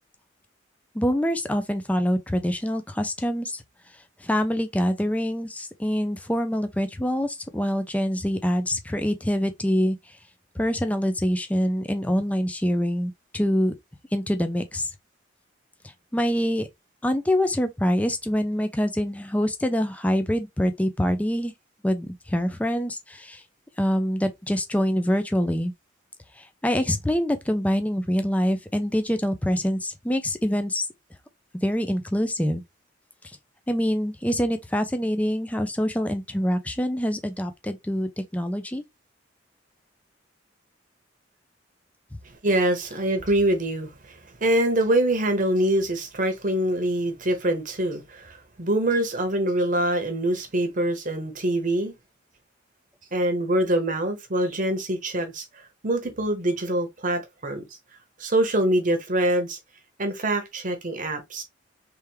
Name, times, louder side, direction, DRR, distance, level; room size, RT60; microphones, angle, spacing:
voice 1, 0.9-3.6 4.2-10.2 10.6-13.7 14.1-14.9 16.1-16.7 17.0-21.5 21.8-23.4 23.8-25.7 26.4-30.9 31.6-32.6 33.7-38.8, equal, 5° left, 0.4 m, -25 dB
voice 2, 42.4-51.9 53.1-55.5 55.8-57.6 58.2-59.6 60.0-61.4, right 1 dB, 40° right, 0.9 m, -24 dB
3.4 x 3.3 x 3.1 m
head